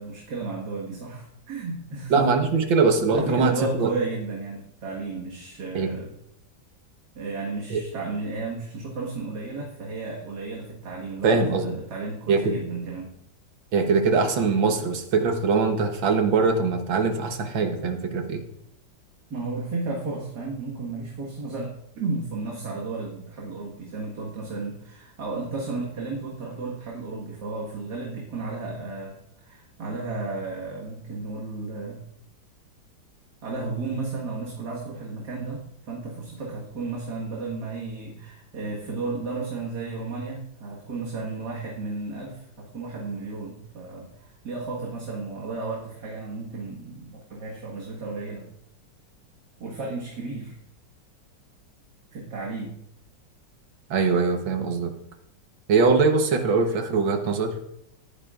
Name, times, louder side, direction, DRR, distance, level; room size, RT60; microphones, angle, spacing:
voice 1, 0.0-2.3 3.1-6.1 7.2-13.1 19.3-32.0 33.4-48.5 49.6-50.6 52.1-52.8, right 3 dB, 60° right, -3 dB, 2.2 m, -33 dB
voice 2, 2.1-3.9 5.7-6.0 7.7-7.8 11.2-11.7 12.3-12.6 13.7-18.4 53.9-54.9 55.7-57.6, right 4 dB, 90° right, 6 dB, 1.9 m, -22 dB
18.5 x 9.9 x 2.5 m, 0.78 s
omnidirectional pair, 2.0 m